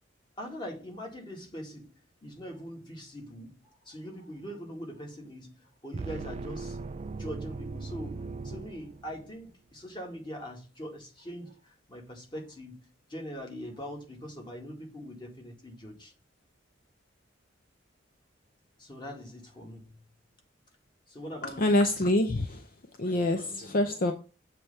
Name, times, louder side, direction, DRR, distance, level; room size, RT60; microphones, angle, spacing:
voice 1, 0.4-1.9 2.2-3.5 3.9-6.8 7.2-16.1 18.8-19.9 21.1-21.7, equal, 25° left, 1.9 m, -42 dB
sound 1, 5.9-9.4, right 4 dB, 35° right, 0.3 m, -39 dB
voice 2, 21.4-22.7 23.0-24.1, left 1 dB, 45° left, 0.6 m, -26 dB
7.6 x 3.3 x 5.4 m
head